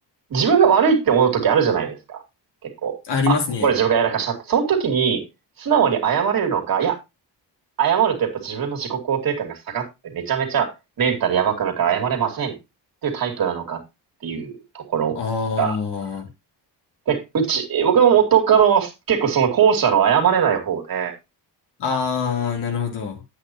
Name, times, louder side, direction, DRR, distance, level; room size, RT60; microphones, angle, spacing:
voice 1, 0.3-2.2 2.6-2.9 3.3-3.4 3.6-5.2 5.6-7.0 7.8-9.8 10.1-10.7 11.0-12.5 13.0-13.8 14.2-15.2 15.6-15.8 17.1-21.1, right 7 dB, 55° right, 2.7 m, -20 dB
voice 2, 3.0-3.7 15.2-16.3 21.8-23.2, left 5 dB, 75° left, 3.6 m, -24 dB
10.5 x 8.6 x 3.1 m
cardioid pair, 130°, 41 cm